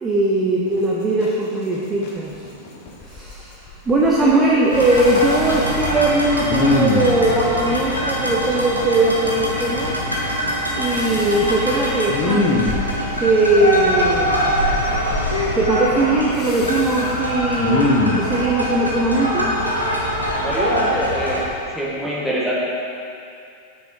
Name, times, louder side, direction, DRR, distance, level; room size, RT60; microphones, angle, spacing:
voice 1, 0.0-2.4 3.0-3.6 3.9-10.0 10.8-12.5 13.2-14.6 15.6-19.5 22.0-22.1, right 2 dB, 15° right, -4 dB, 0.7 m, -19 dB
sound 1, 0.7-13.3, left 1 dB, 50° left, 1.2 m, -36 dB
Respiratory sounds, 2.3-2.4 2.9-3.4 3.7-4.4 4.8-5.8 6.5-7.3 10.9-11.5 12.1-13.2 14.7-15.3 16.4-17.1 17.6-18.3 20.2-21.1 21.5-21.7, left 3 dB, 35° left, 0.9 m, -23 dB
sound 2, 4.7-21.4, equal, 90° left, 1.1 m, -23 dB
voice 2, 20.4-21.4 21.7-22.6, equal, ahead, -7 dB, 1.8 m, -24 dB
6.6 x 6.3 x 4.7 m, 2.5 s
figure-of-eight pair, 90°, 0 cm